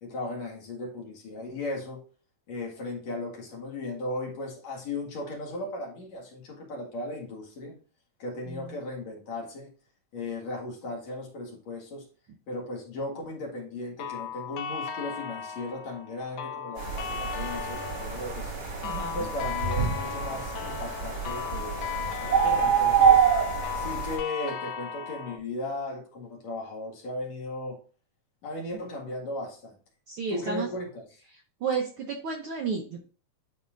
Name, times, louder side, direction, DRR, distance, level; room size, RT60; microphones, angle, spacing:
voice 1, 0.0-2.0 2.5-7.8 8.2-9.7 10.1-12.1 12.5-18.6 19.1-21.8 22.2-23.2 23.7-27.8 28.4-29.8 30.3-31.1, left 2 dB, 65° left, -1 dB, 3.0 m, -36 dB
sound 1, 14.0-25.4, left 8 dB, 80° left, 2.1 m, -36 dB
sound 2, 16.8-24.2, right 7 dB, 45° right, 4.0 m, -26 dB
voice 2, 18.8-19.2 30.1-30.7 31.6-33.0, right 5 dB, 70° right, 1 dB, 1.4 m, -32 dB
10.5 x 4.2 x 2.5 m, 0.38 s
omnidirectional pair, 3.4 m